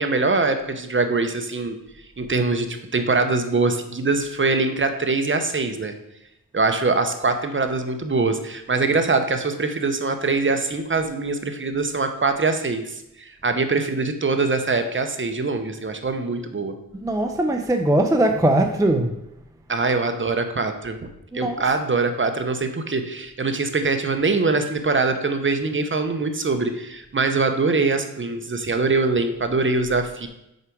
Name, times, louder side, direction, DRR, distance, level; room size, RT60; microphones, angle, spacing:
voice 1, 0.0-1.8 2.2-5.9 6.5-16.7 19.7-21.0 21.3-30.3, right 3 dB, 35° right, 7 dB, 0.8 m, -23 dB
voice 2, 16.9-19.2 21.3-21.6, right 1 dB, 10° right, 5 dB, 0.5 m, -20 dB
6.6 x 4.8 x 4.6 m, 0.85 s
wide cardioid pair, 85°, 36 cm